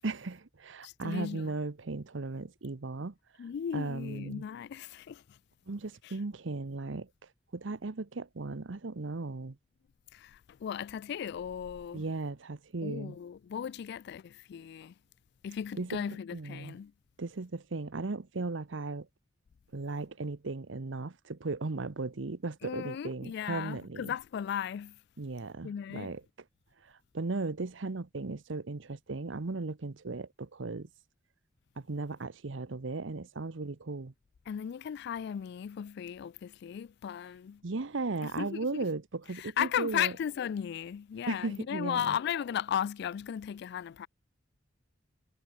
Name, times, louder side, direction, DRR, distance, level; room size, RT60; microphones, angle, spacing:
voice 1, 0.0-3.1 3.7-4.4 5.7-7.1 7.5-9.6 11.9-13.2 15.8-16.0 16.3-16.8 17.2-19.1 19.7-24.1 25.2-26.2 26.8-30.9 31.8-34.1 37.6-40.1 41.3-42.2, right 3 dB, 75° right, 0.9 m, -36 dB
voice 2, 0.8-1.5 3.4-5.4 6.0-6.2 10.1-12.0 12.8-14.9 15.4-16.9 22.6-25.0 25.6-26.1 34.5-37.6 38.2-38.7 39.3-44.1, left 8 dB, 60° left, 0.3 m, -36 dB
head